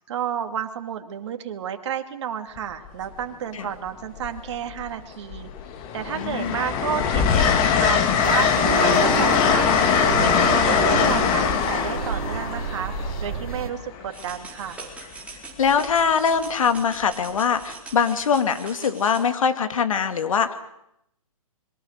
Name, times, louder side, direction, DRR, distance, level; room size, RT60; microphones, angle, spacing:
voice 1, 0.1-5.5 5.9-9.7 10.2-12.9 13.2-14.8, right 9 dB, 50° right, 6 dB, 2.5 m, -31 dB
Train, 2.6-2.9 4.2-4.9 5.3-14.1 15.7-15.9, left 7 dB, 25° left, 2.2 m, -22 dB
voice 2, 6.1-6.6 15.6-20.5, left 6 dB, 65° left, 9 dB, 2.5 m, -22 dB
sound 1, 8.2-13.7, right 5 dB, 75° right, 1.9 m, -29 dB
sound 2, 14.1-19.2, right 4 dB, 5° right, 4.2 m, -42 dB
26.0 x 22.5 x 6.7 m, 0.81 s
hypercardioid pair, 145°, 19 cm